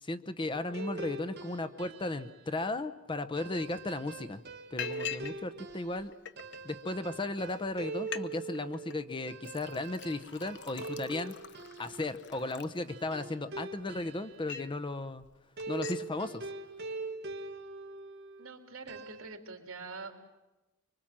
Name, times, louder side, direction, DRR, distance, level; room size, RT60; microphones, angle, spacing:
voice 1, 0.0-4.4 4.7-6.1 6.6-11.3 11.8-15.2 15.7-16.5, left 2 dB, 25° left, 11 dB, 0.8 m, -35 dB
sound 1, 0.5-2.4 3.4-14.5 15.6-18.5 18.9-19.4, right 3 dB, 50° right, 1.3 m, -43 dB
Liquid, 3.6-3.7 4.0-4.3 4.8-5.4 5.7-6.6 7.2-7.3 7.6-7.7 8.0-8.3 8.5-9.0 9.4-13.3 13.8-14.8 15.2-15.3 15.6-16.1, left 9 dB, 55° left, 0.9 m, -44 dB
voice 2, 18.4-20.1, right 4 dB, 75° right, 4 dB, 3.3 m, -45 dB
24.5 x 24.5 x 7.4 m, 1.0 s
head